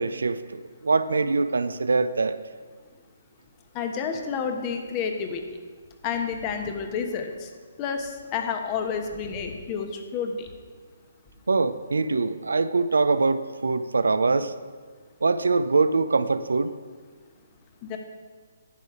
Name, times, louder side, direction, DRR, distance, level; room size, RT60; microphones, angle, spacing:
voice 1, 0.0-2.4 11.5-14.5 15.2-16.7, right 3 dB, 75° right, 13 dB, 0.4 m, -23 dB
voice 2, 3.7-5.4 6.0-7.5 7.8-10.5 17.8-18.0, left 6 dB, 30° left, 5 dB, 1.0 m, -30 dB
10.0 x 6.8 x 4.9 m, 1.5 s
figure-of-eight pair, 135°, 0 cm